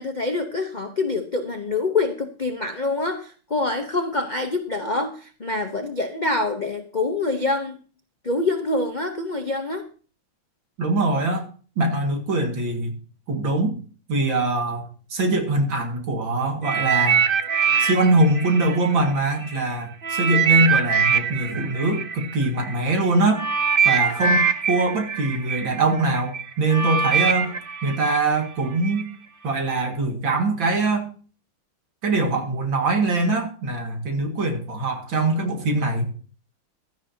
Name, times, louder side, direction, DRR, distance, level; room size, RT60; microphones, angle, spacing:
voice 1, 0.0-7.8 8.2-9.9, left 3 dB, 45° left, 5 dB, 0.6 m, -25 dB
voice 2, 10.8-11.5 11.8-12.9 13.3-13.8 14.1-14.9 15.1-17.2 17.8-23.4 23.8-27.5 27.8-29.1 29.4-31.1 32.0-36.1, right 2 dB, 70° right, 4 dB, 2.7 m, -22 dB
sound 1, 16.6-19.6 20.0-29.0 29.7-29.9, right 6 dB, 45° right, 0.7 m, -23 dB
16.0 x 12.0 x 2.8 m, 0.38 s
omnidirectional pair, 2.2 m